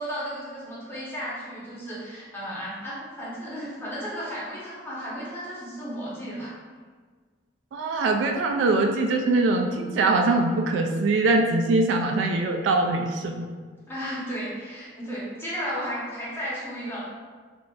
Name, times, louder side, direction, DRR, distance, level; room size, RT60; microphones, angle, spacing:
voice 1, 0.0-6.5 13.9-17.1, equal, 15° left, -9 dB, 1.0 m, -34 dB
voice 2, 7.7-13.5, right 2 dB, 75° right, 3 dB, 0.3 m, -23 dB
3.6 x 2.3 x 2.5 m, 1.5 s
head